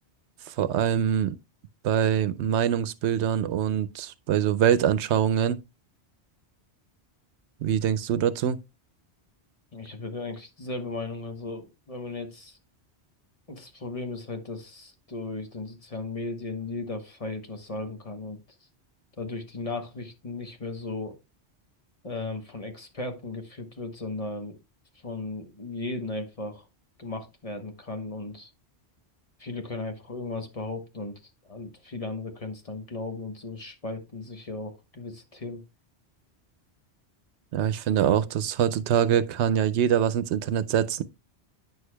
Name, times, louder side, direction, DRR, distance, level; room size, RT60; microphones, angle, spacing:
voice 1, 0.5-1.4 1.8-5.6 7.6-8.6 37.5-41.0, right 9 dB, 85° right, 0.9 m, -24 dB
voice 2, 9.7-12.6 13.5-18.4 19.2-21.1 22.0-24.6 25.0-26.6 27.0-28.5 29.4-31.2 31.4-35.6, left 2 dB, 35° left, 1.1 m, -36 dB
9.3 x 6.5 x 2.2 m
omnidirectional pair, 1.1 m